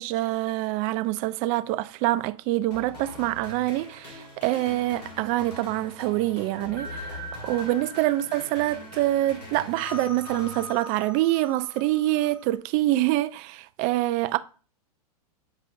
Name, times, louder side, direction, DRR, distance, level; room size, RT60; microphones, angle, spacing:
voice 1, 0.0-14.4, right 16 dB, 40° right, 0.4 m, -26 dB
sound 1, 2.7-11.3, left 1 dB, 90° left, 2.3 m, -43 dB
sound 2, 6.6-12.6, left 1 dB, 10° left, 1.7 m, -42 dB
7.8 x 4.8 x 2.6 m
hypercardioid pair, 110°, 20 cm